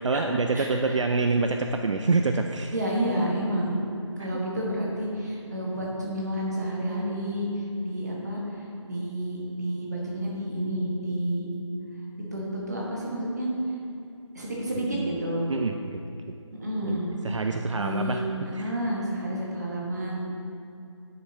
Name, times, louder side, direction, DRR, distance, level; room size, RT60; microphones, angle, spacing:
voice 1, 0.0-2.7 4.2-4.3 14.9-15.2 15.5-16.0 16.8-18.2 18.5-18.7, right 3 dB, 70° right, 5 dB, 0.4 m, -26 dB
voice 2, 0.5-1.0 2.7-3.8 4.2-7.5 7.8-8.4 8.8-11.5 12.3-13.5 14.3-15.5 16.6-17.1 17.7-20.1, right 1 dB, 35° right, -3 dB, 1.3 m, -30 dB
11.0 x 6.5 x 2.8 m, 2.6 s
figure-of-eight pair, 175°, 16 cm